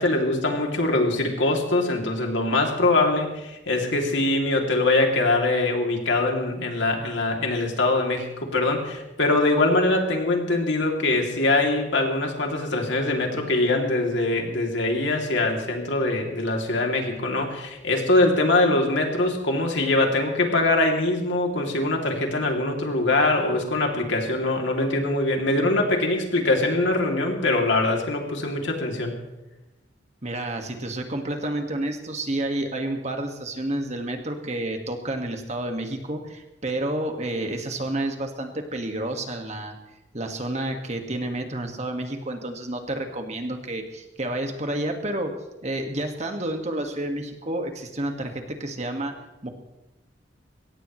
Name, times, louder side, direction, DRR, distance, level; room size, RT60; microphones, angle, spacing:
voice 1, 0.0-29.1, left 2 dB, 70° left, 1 dB, 2.8 m, -23 dB
voice 2, 30.2-39.7 40.1-45.3 45.6-49.1 49.4-49.5, right 1 dB, 35° right, 4 dB, 1.7 m, -30 dB
22.0 x 17.5 x 3.2 m, 1.0 s
head